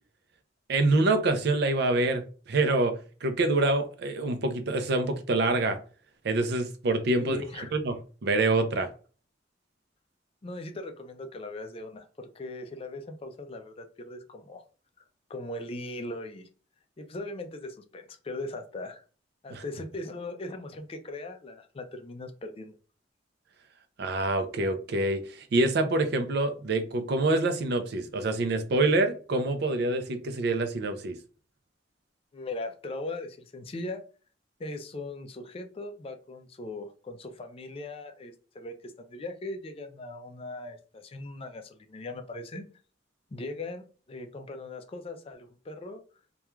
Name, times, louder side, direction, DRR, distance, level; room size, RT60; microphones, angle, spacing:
voice 1, 0.7-2.9 3.2-5.8 6.2-7.4 7.7-7.9 8.2-8.9 19.5-19.6 24.0-31.2, right 2 dB, 60° right, 0.5 m, -26 dB
voice 2, 7.1-7.7 10.4-14.6 15.3-16.5 17.0-19.0 19.4-22.8 32.3-34.0 34.6-42.7 43.3-46.0, left 2 dB, 30° left, 0.4 m, -39 dB
3.0 x 2.3 x 2.2 m
head